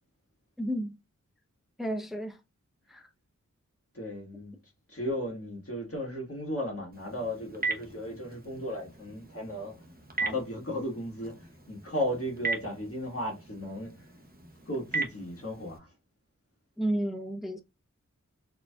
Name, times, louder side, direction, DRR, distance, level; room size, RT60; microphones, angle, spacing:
voice 1, 0.6-1.0 1.8-2.4 2.9-3.1 16.8-17.6, right 1 dB, ahead, 0.6 m, -32 dB
voice 2, 3.9-4.5 4.9-9.7 10.2-14.1 14.7-15.9, left 1 dB, 45° left, 1.5 m, -35 dB
Telephone, 6.9-15.8, right 3 dB, 30° right, 0.9 m, -38 dB
4.2 x 2.8 x 2.3 m
wide cardioid pair, 65°, 31 cm